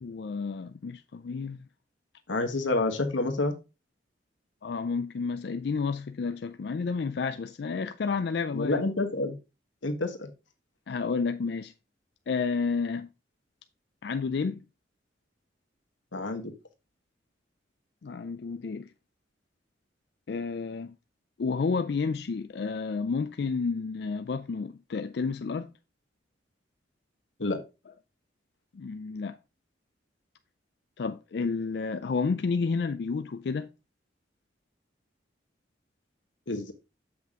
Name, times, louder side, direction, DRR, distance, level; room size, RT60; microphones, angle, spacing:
voice 1, 0.0-1.6 4.6-8.9 10.9-11.7 12.3-13.1 14.0-14.6 18.0-18.9 20.3-20.9 21.4-25.7 28.7-29.4 31.0-33.7, left 4 dB, 60° left, 0.4 m, -31 dB
voice 2, 2.3-3.5 8.5-9.4 9.8-10.3 16.1-16.5 27.4-27.6 36.5-36.7, left 2 dB, 90° left, 1.4 m, -28 dB
7.5 x 5.8 x 3.7 m
head